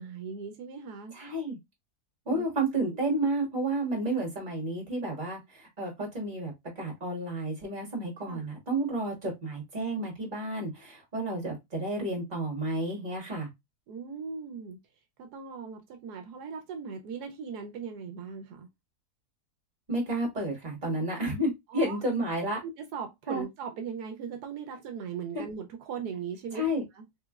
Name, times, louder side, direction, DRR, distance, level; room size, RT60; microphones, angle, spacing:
voice 1, 0.0-1.1 2.3-3.0 8.2-8.4 13.9-14.8 15.2-18.7 21.7-22.0 22.6-26.7, right 6 dB, 80° right, 1.2 m, -39 dB
voice 2, 1.1-1.6 2.3-13.5 19.9-22.6 23.3-23.5 25.3-25.4 26.5-26.8, right 1 dB, 30° right, 1.7 m, -31 dB
3.6 x 3.0 x 2.3 m
omnidirectional pair, 1.7 m